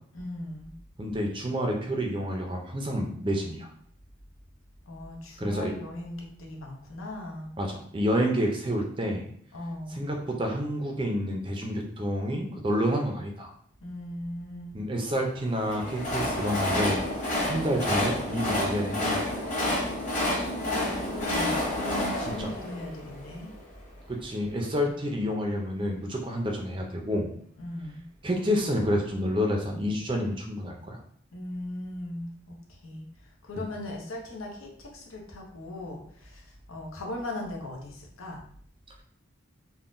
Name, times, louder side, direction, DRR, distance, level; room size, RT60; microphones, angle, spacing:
voice 1, 0.1-0.8 4.9-7.5 9.5-10.0 13.8-14.8 19.7-23.5 27.6-28.1 31.3-38.4, left 1 dB, 90° left, 0 dB, 0.8 m, -38 dB
voice 2, 1.0-3.7 5.4-5.7 7.6-9.3 10.0-13.5 14.7-17.0 17.5-19.5 22.3-22.5 24.1-27.3 28.2-31.0, equal, 25° right, 1 dB, 0.4 m, -29 dB
Train, 15.5-23.6, left 1 dB, 35° left, 1.2 m, -29 dB
3.6 x 2.1 x 2.5 m, 0.62 s
head